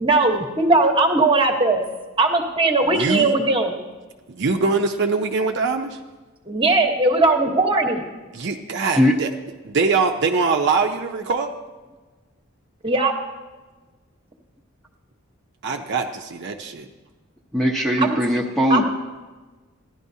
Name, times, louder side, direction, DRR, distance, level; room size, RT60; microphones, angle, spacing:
voice 1, 0.0-1.8 2.2-3.8 6.5-8.0 12.8-13.1 18.0-18.1 18.7-18.8, right 2 dB, 25° right, 3 dB, 1.1 m, -19 dB
voice 2, 2.8-3.4 4.3-6.0 8.3-9.3 9.6-11.5 15.6-16.9, right 4 dB, 55° right, 3 dB, 0.6 m, -23 dB
voice 3, 17.5-18.8, equal, ahead, 1 dB, 0.9 m, -19 dB
15.0 x 11.0 x 2.7 m, 1.3 s
head